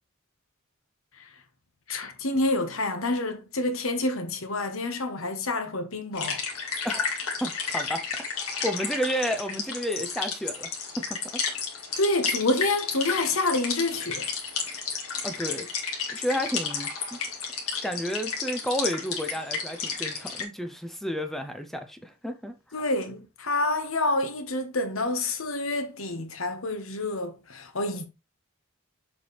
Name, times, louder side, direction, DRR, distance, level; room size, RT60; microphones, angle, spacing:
voice 1, 1.9-6.4 12.0-14.3 22.7-28.1, left 2 dB, 70° left, 1.2 m, -28 dB
sound 1, 6.1-20.4, left 5 dB, 85° left, 2.0 m, -32 dB
voice 2, 7.4-8.0 8.6-10.7 11.0-11.2 15.2-15.7 16.1-17.2 17.8-22.5, equal, ahead, 0.6 m, -31 dB
7.1 x 4.7 x 3.2 m
head